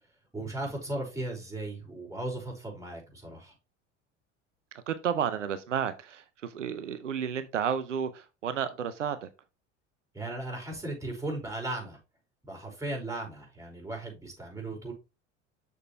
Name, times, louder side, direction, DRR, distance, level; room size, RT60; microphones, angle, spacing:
voice 1, 0.3-3.5 10.1-12.0 12.4-14.9, right 2 dB, 10° right, -1 dB, 5.3 m, -36 dB
voice 2, 4.7-9.3, right 8 dB, 90° right, 12 dB, 0.7 m, -32 dB
7.0 x 6.7 x 3.2 m, 0.27 s
hypercardioid pair, 70°, 36 cm